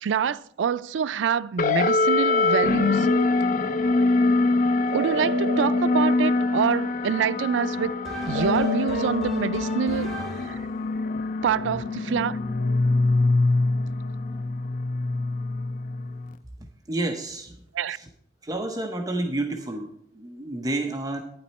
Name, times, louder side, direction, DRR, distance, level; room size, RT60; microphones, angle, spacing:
voice 1, 0.0-3.1 4.9-7.9 8.3-10.2 10.5-10.6 11.4-12.4 17.7-18.0, right 7 dB, 80° right, 0.4 m, -26 dB
sound 1, 1.6-16.3, left 3 dB, 45° left, 0.5 m, -24 dB
sound 2, 2.3-3.6 4.9-7.1 8.3-10.5, right 1 dB, 65° right, 1.5 m, -34 dB
sound 3, 7.4-10.7, right 1 dB, ahead, 3.1 m, -38 dB
voice 2, 16.9-17.6 17.9-18.1 18.4-21.2, right 2 dB, 20° right, 0.7 m, -30 dB
11.0 x 9.9 x 4.2 m
head